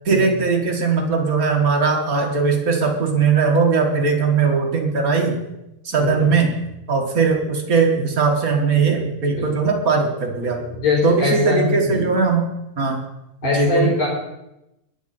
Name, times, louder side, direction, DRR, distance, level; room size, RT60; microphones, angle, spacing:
voice 1, 0.1-5.3 5.8-6.5 6.9-10.6 11.0-12.5 12.8-13.0 13.4-14.0, right 5 dB, 35° right, 2 dB, 1.7 m, -19 dB
voice 2, 6.0-6.3 9.3-9.5 10.4-10.5 10.8-12.1 13.4-14.1, left 4 dB, 65° left, -3 dB, 5.6 m, -22 dB
21.0 x 7.8 x 4.3 m, 0.89 s
omnidirectional pair, 3.3 m